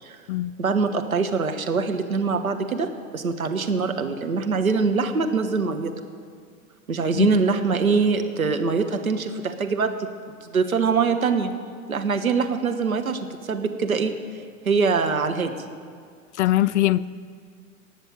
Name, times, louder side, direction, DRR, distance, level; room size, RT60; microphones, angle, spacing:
voice 1, 0.6-5.9 6.9-9.9 10.5-11.5 11.9-14.1 14.6-15.5, right 4 dB, 80° right, 6 dB, 1.3 m, -23 dB
voice 2, 16.4-17.1, left 15 dB, 55° left, 18 dB, 0.5 m, -21 dB
18.0 x 6.6 x 9.0 m, 2.1 s
figure-of-eight pair, 90°, 42 cm